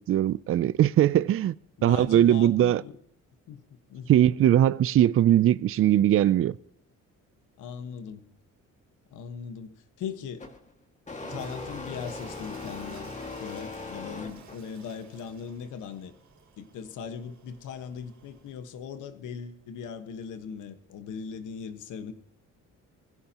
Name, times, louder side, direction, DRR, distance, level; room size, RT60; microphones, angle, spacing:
voice 1, 0.0-1.5 1.8-2.8 4.1-6.6, right 11 dB, 50° right, 0.4 m, -20 dB
voice 2, 1.8-3.0 3.5-4.3 7.6-8.2 9.1-10.5 11.2-16.1 16.6-22.1, left 7 dB, 85° left, 1.5 m, -39 dB
sound 1, 10.4-10.6 11.1-14.7, left 3 dB, 25° left, 2.1 m, -39 dB
Toilet flush, 11.1-18.6, right 5 dB, 65° right, 3.6 m, -51 dB
21.5 x 16.0 x 3.0 m
cardioid pair, 120°, 30 cm